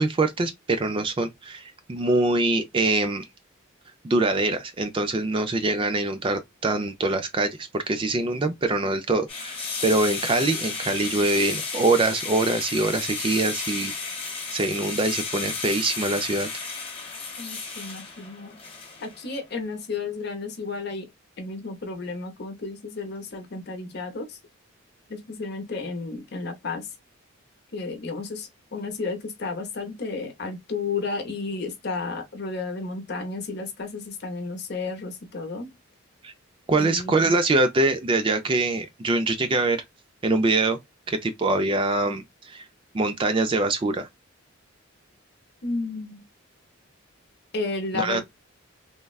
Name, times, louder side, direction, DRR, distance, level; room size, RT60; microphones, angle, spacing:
voice 1, 0.0-3.3 4.0-14.2 14.5-16.5 36.2-36.3 36.7-39.8 40.2-40.8 41.1-42.7 42.9-44.1 47.9-48.2, right 2 dB, 25° right, 0.3 m, -24 dB
sound 1, 9.3-19.3, left 4 dB, 25° left, 1.1 m, -33 dB
voice 2, 17.4-18.6 19.0-21.1 21.4-24.4 25.1-26.9 27.7-35.7 36.8-37.4 45.6-46.2 47.5-48.2, left 3 dB, 50° left, 0.8 m, -32 dB
3.4 x 2.1 x 2.3 m
head